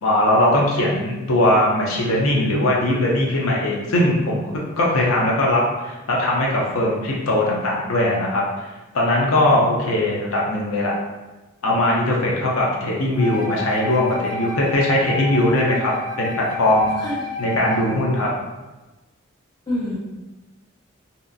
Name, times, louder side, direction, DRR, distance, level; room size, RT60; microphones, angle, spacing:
voice 1, 0.0-8.4 8.9-11.0 11.6-16.9 17.4-18.3, left 1 dB, 80° left, -3 dB, 0.6 m, -20 dB
Wind instrument woodwind instrument, 13.2-18.1, left 3 dB, 50° left, 1.3 m, -30 dB
voice 2, 17.6-18.0 19.7-20.0, left 1 dB, 20° left, -7 dB, 0.6 m, -28 dB
2.8 x 2.4 x 2.5 m, 1.1 s
head